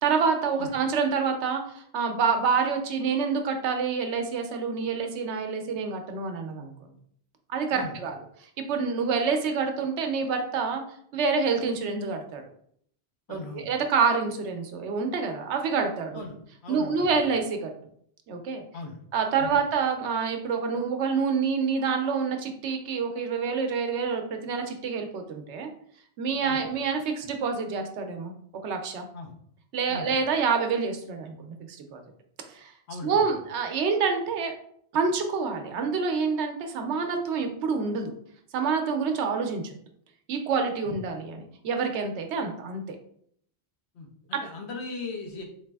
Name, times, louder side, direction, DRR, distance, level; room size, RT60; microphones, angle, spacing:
voice 1, 0.0-6.7 7.5-8.2 8.6-10.8 11.1-12.4 13.3-16.3 16.7-17.7 18.3-18.6 19.1-25.7 26.2-28.3 28.6-29.1 29.7-32.0 32.5-32.7 33.0-34.5 34.9-38.1 38.5-39.7 40.3-43.0, right 5 dB, 90° right, 5 dB, 0.9 m, -27 dB
voice 2, 13.3-13.7 16.1-16.4 16.6-17.2 18.7-19.0 19.4-19.6 26.4-26.6 29.1-29.3 29.9-30.1 32.9-33.3 40.9-41.0 43.9-45.4, left 3 dB, 75° left, 1 dB, 1.0 m, -38 dB
4.0 x 3.1 x 2.2 m, 0.65 s
omnidirectional pair, 1.1 m